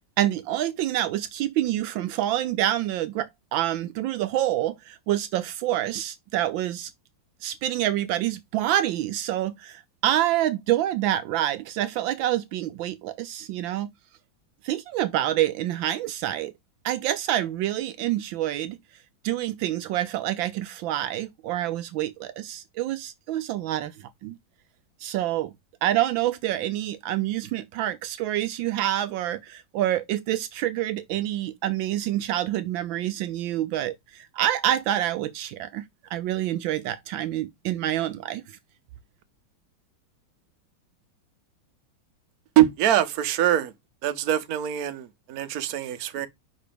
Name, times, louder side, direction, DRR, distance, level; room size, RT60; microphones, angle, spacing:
voice 1, 0.2-6.9 7.4-13.9 14.6-16.5 16.8-18.8 19.2-24.4 25.0-25.5 25.8-35.8 36.1-38.4, right 13 dB, 80° right, 1.3 m, -27 dB
voice 2, 42.6-43.7 44.0-46.3, right 12 dB, 60° right, 1.1 m, -23 dB
5.2 x 3.9 x 5.0 m
omnidirectional pair, 2.2 m